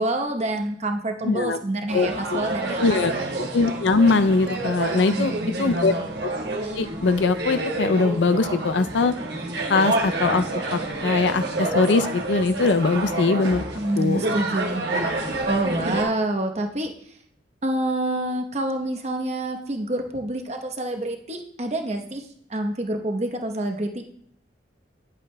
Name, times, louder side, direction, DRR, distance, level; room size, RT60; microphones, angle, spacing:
voice 1, 0.0-3.0 5.1-6.0 13.7-14.8 15.4-16.9 17.6-22.2 22.5-24.0, right 1 dB, 35° right, 4 dB, 0.9 m, -27 dB
voice 2, 1.2-1.6 1.9-2.4 2.8-3.1 3.5-5.3 5.6-5.9 6.7-9.1 9.7-10.4 10.7-13.6 14.0-14.2, left 3 dB, 75° left, 10 dB, 0.5 m, -21 dB
sound 1, 1.9-16.0, right 2 dB, 65° right, 1.2 m, -28 dB
9.8 x 8.2 x 2.2 m, 0.69 s
head